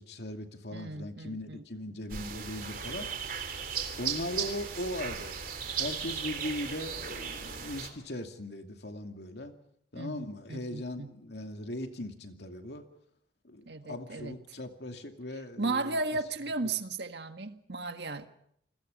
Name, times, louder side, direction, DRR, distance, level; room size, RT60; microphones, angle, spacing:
voice 1, 0.0-3.1 4.0-5.4 5.8-9.5 9.9-12.9 13.4-16.2, left 1 dB, 70° left, 5 dB, 2.5 m, -39 dB
voice 2, 0.7-1.6 9.9-11.2 13.6-14.4 15.6-18.3, right 3 dB, 75° right, 8 dB, 1.6 m, -35 dB
sound 1, 2.1-7.9, right 7 dB, 50° right, 3.3 m, -36 dB
29.0 x 20.5 x 5.4 m, 0.68 s
head